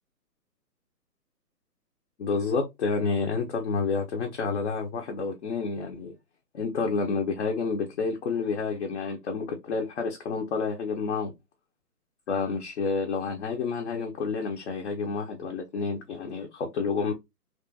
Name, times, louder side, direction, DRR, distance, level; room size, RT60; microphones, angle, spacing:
voice 1, 2.2-6.2 6.5-11.3 12.3-17.1, left 4 dB, 45° left, 0.5 m, -29 dB
2.9 x 2.3 x 2.6 m
hypercardioid pair, 145°, 47 cm